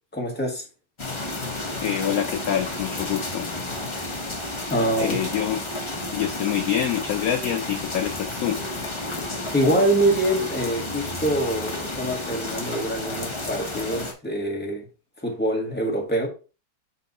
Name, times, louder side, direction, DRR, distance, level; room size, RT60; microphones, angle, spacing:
voice 1, 0.1-0.7 4.7-5.2 9.5-14.8 15.2-16.3, right 1 dB, 5° left, 1.4 m, -24 dB
sound 1, 1.0-14.1, left 2 dB, 20° left, 0.9 m, -32 dB
voice 2, 1.8-3.5 5.0-5.6 6.1-8.6, left 9 dB, 70° left, 0.9 m, -26 dB
7.4 x 3.4 x 4.0 m
omnidirectional pair, 1.9 m